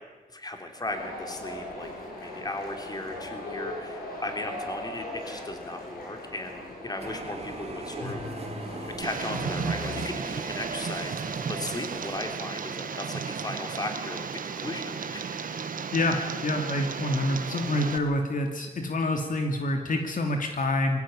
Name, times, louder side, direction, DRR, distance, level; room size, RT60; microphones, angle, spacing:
voice 1, 0.3-1.9 2.2-8.2 8.8-15.4, left 2 dB, 25° left, 5 dB, 3.6 m, -37 dB
sound 1, 0.8-10.0, left 1 dB, 85° left, 7.9 m, -39 dB
sound 2, 7.0-12.2, right 3 dB, 45° right, 3.5 m, -40 dB
Tick, 9.0-18.0, right 6 dB, 65° right, 1.6 m, -34 dB
voice 2, 15.9-21.0, left 1 dB, 60° left, 4 dB, 2.7 m, -27 dB
22.0 x 16.5 x 9.9 m, 1.3 s
wide cardioid pair, 100°, 15 cm